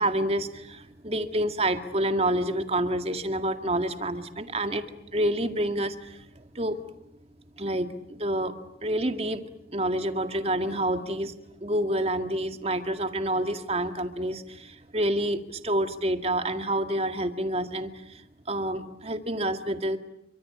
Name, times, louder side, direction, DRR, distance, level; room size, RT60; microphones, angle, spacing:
voice 1, 0.0-4.9 5.1-6.8 7.6-8.5 8.8-11.3 11.6-20.0, right 1 dB, 35° right, 7 dB, 2.0 m, -28 dB
28.5 x 25.0 x 8.4 m, 0.82 s
head